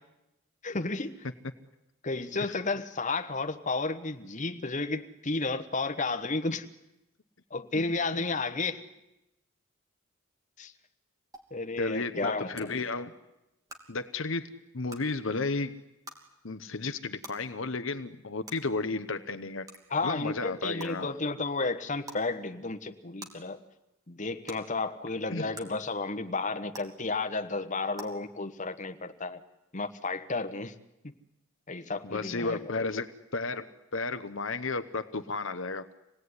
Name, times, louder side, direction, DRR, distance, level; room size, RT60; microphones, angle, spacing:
voice 1, 0.6-1.3 2.0-6.7 7.5-8.8 10.6-10.7 11.5-12.7 19.9-23.6 24.1-29.4 29.7-30.7 31.0-31.1 31.7-32.6, left 3 dB, 35° left, 8 dB, 1.3 m, -32 dB
sound 1, 11.3-11.4 12.5-12.6 13.7-13.8 14.9-15.0 16.0-16.2 17.2-17.3 18.4-18.5 19.7-19.8 20.8-20.9 22.0-22.2 23.2-23.3 24.5-24.6 25.5-25.6 26.7-26.8 27.9-28.0, right 1 dB, 15° right, 2.9 m, -43 dB
voice 2, 11.8-13.1 13.9-15.7 16.4-19.7 20.0-21.1 25.3-25.5 32.0-35.9, left 3 dB, 65° left, 9 dB, 1.0 m, -33 dB
26.5 x 18.5 x 9.7 m, 0.96 s
head